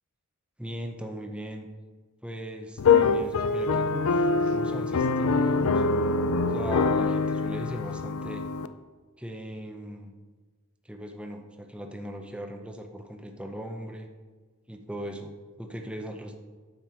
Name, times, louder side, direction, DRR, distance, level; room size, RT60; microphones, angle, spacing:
voice 1, 0.6-1.7 2.2-5.8 6.5-8.4 9.2-10.1 10.8-14.1 14.7-15.3 15.6-16.4, equal, 5° right, 3 dB, 0.7 m, -38 dB
sound 1, 2.8-8.7, left 4 dB, 75° left, 0.4 m, -24 dB
9.2 x 6.8 x 4.5 m, 1.4 s
head